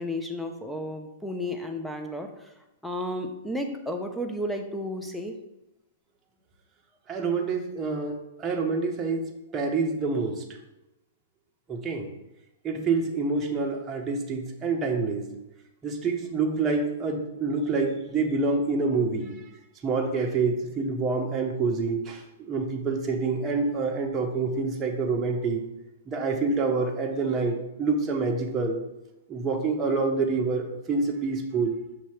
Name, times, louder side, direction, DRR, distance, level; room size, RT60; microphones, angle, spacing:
voice 1, 0.0-2.5 2.8-5.4, left 1 dB, ahead, 4 dB, 0.7 m, -33 dB
voice 2, 7.1-9.2 9.5-10.4 11.7-12.1 12.6-15.3 15.8-19.4 19.8-25.6 26.1-27.5 27.8-28.8 29.3-31.7, right 4 dB, 20° right, 0 dB, 1.0 m, -27 dB
6.6 x 3.0 x 5.8 m, 0.94 s
hypercardioid pair, 135°, 0 cm